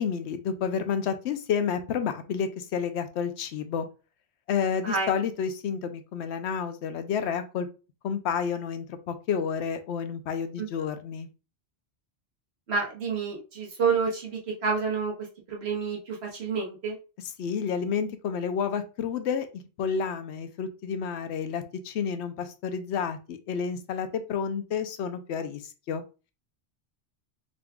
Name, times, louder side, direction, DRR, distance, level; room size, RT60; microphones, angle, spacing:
voice 1, 0.0-3.9 4.5-7.7 8.0-11.3 17.4-25.6 25.9-26.0, left 7 dB, 80° left, 9 dB, 0.9 m, -30 dB
voice 2, 12.7-15.1 15.5-17.0, right 5 dB, 70° right, -1 dB, 1.4 m, -29 dB
3.8 x 2.3 x 3.5 m, 0.32 s
omnidirectional pair, 1.1 m